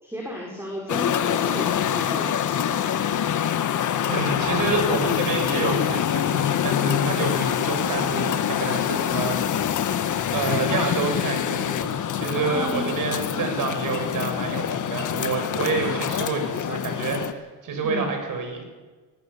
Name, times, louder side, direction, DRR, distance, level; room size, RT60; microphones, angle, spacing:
voice 1, 0.0-2.3 5.1-5.3 12.4-12.9 17.8-18.1, equal, 5° right, -1 dB, 5.2 m, -33 dB
sound 1, 0.9-17.3, left 9 dB, 55° left, 1.6 m, -25 dB
voice 2, 4.1-9.7 10.3-18.7, right 4 dB, 60° right, 5 dB, 6.9 m, -28 dB
20.5 x 18.5 x 7.2 m, 1.3 s
supercardioid pair, 85°, 37 cm